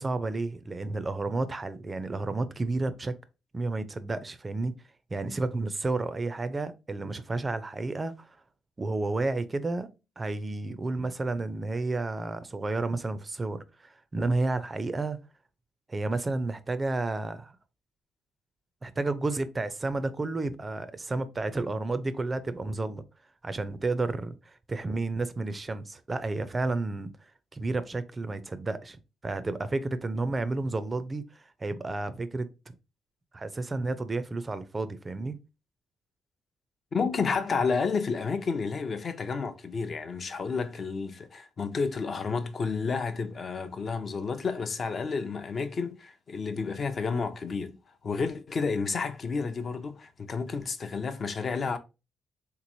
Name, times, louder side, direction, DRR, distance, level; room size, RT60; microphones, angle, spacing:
voice 1, 0.0-3.1 3.5-4.7 5.1-8.3 8.8-9.9 10.2-15.2 15.9-17.5 18.8-23.0 23.4-27.1 27.5-31.2 31.6-32.5 33.3-35.4, right 2 dB, 25° right, 0.4 m, -31 dB
voice 2, 36.9-47.8 48.0-51.8, left 5 dB, 45° left, 0.5 m, -31 dB
3.5 x 3.0 x 2.6 m
cardioid pair, 90°, 0 cm